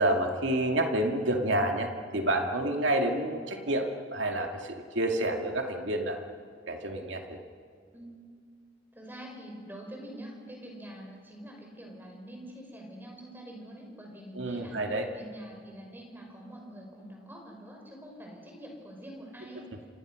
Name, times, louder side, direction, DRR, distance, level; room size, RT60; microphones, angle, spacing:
voice 1, 0.0-6.2 6.7-7.4 14.3-15.1, right 1 dB, 80° right, 3 dB, 2.3 m, -29 dB
voice 2, 8.9-14.8 15.1-19.6, right 1 dB, 10° right, 0 dB, 5.7 m, -45 dB
28.0 x 27.0 x 6.4 m, 2.2 s
head